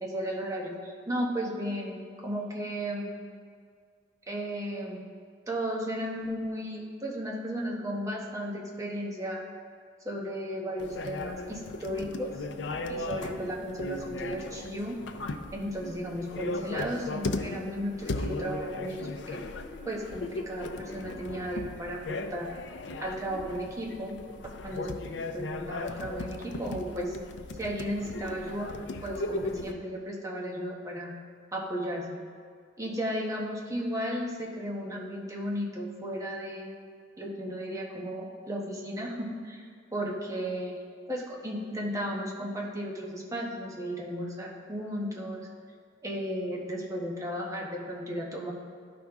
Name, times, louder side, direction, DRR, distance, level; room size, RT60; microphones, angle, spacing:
voice 1, 0.0-3.1 4.3-5.0 5.5-9.4 10.0-12.4 12.9-15.0 15.5-19.4 19.8-22.5 23.0-24.2 24.6-25.0 25.3-27.2 27.6-28.8 29.0-31.1 31.5-32.2 32.8-36.7 37.2-40.8 41.1-45.5 46.0-48.5, equal, 20° right, -2 dB, 1.0 m, -34 dB
sound 1, 10.8-29.7, left 3 dB, 85° left, 0.5 m, -37 dB
12.0 x 5.1 x 3.5 m, 2.1 s
head